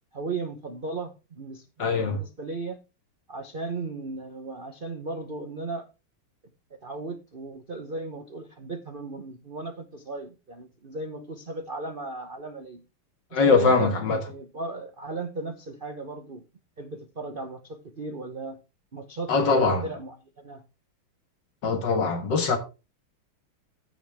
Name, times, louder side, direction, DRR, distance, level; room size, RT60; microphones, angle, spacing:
voice 1, 0.1-2.8 3.3-5.9 6.8-12.8 13.5-16.4 16.8-18.6 18.9-20.6, right 3 dB, 45° right, 0.7 m, -36 dB
voice 2, 1.8-2.2 13.3-14.2 19.3-19.9 21.6-22.6, left 4 dB, 60° left, 2.2 m, -22 dB
15.5 x 5.3 x 3.5 m
omnidirectional pair, 2.3 m